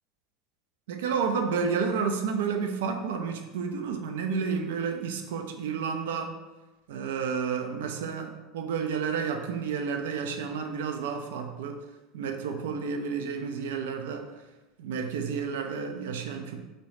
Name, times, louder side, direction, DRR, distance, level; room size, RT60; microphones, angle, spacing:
voice 1, 0.9-6.3 6.9-11.8 12.1-14.3 14.8-16.6, right 6 dB, 65° right, 4 dB, 0.3 m, -31 dB
3.0 x 2.7 x 3.1 m, 1.1 s
figure-of-eight pair, 80°, 0 cm